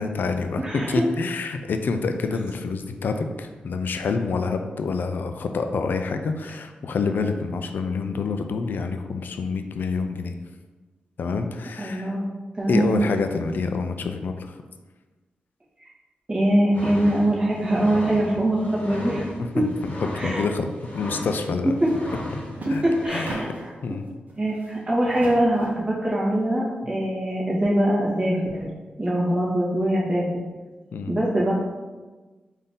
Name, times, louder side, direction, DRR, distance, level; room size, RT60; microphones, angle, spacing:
voice 1, 0.0-10.3 11.2-12.2 12.7-14.6 19.4-20.7 20.9-21.7 22.7-23.5 23.8-24.0 30.9-31.2, left 4 dB, 70° left, 6 dB, 0.3 m, -27 dB
voice 2, 0.6-1.0 11.8-12.3 12.6-12.9 16.3-19.2 19.5-19.6 20.1-20.4 21.8-21.9 22.7-23.5 24.4-28.7 29.0-30.2 31.1-31.5, right 1 dB, 30° right, -5 dB, 1.3 m, -23 dB
sound 1, 16.7-23.1, left 1 dB, 45° left, 1.0 m, -36 dB
sound 2, 21.7-22.0 22.3-23.8 24.3-25.9, right 1 dB, 55° right, 0.9 m, -38 dB
3.9 x 2.6 x 3.6 m, 1.3 s
cardioid pair, 80°, 3 cm